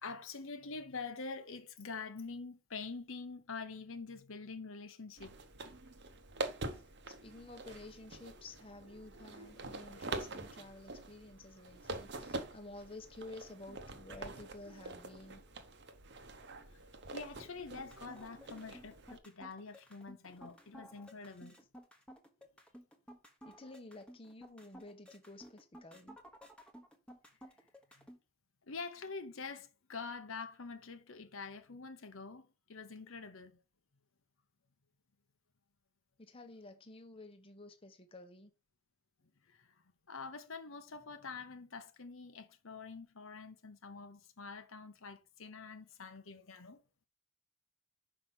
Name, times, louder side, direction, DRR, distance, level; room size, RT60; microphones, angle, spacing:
voice 1, 0.0-5.4 17.1-21.6 28.0-28.1 28.6-33.6 39.5-39.8 40.1-46.8, left 4 dB, 70° left, 0.9 m, -46 dB
sound 1, 5.2-19.2, right 2 dB, 50° right, 0.9 m, -45 dB
voice 2, 6.7-15.4 21.6-21.7 23.4-26.2 36.2-38.5, left 2 dB, 25° left, 0.9 m, -52 dB
sound 2, 17.6-28.2, equal, 5° left, 1.1 m, -55 dB
5.8 x 5.0 x 5.7 m
head